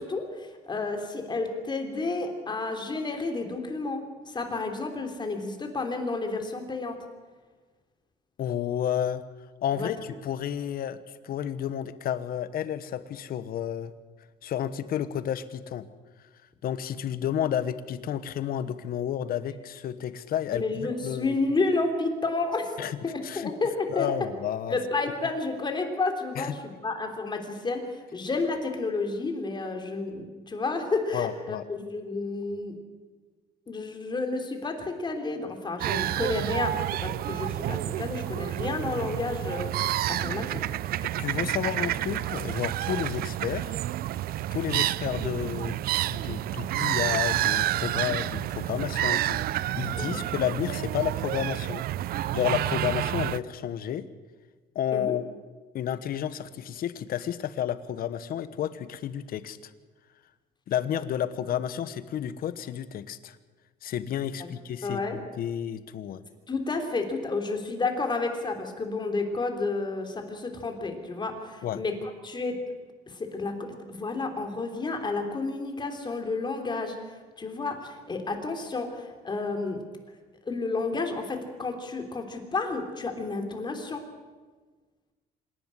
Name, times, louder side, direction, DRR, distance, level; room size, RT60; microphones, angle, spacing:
voice 1, 0.0-7.0 9.7-9.9 20.5-22.8 23.0-24.1 24.7-32.8 33.7-36.8 37.0-40.6 41.0-41.1 41.6-41.7 50.0-50.2 54.9-55.1 64.8-65.2 66.5-72.6 73.1-77.0 77.4-79.8 80.4-84.0, left 3 dB, 25° left, 4 dB, 3.4 m, -31 dB
voice 2, 8.4-9.2 9.6-11.0 11.2-13.9 14.4-15.9 16.6-21.4 22.8-23.5 23.9-24.8 26.4-26.6 31.1-31.6 41.0-43.8 44.5-45.8 46.1-51.8 52.3-54.1 54.7-55.2 55.7-59.6 60.7-63.4 63.8-66.2 71.6-71.8, left 10 dB, 60° left, 13 dB, 1.2 m, -31 dB
sound 1, 35.8-53.4, right 14 dB, 60° right, 0.5 m, -29 dB
26.0 x 11.0 x 9.9 m, 1.4 s
cardioid pair, 110°, 17 cm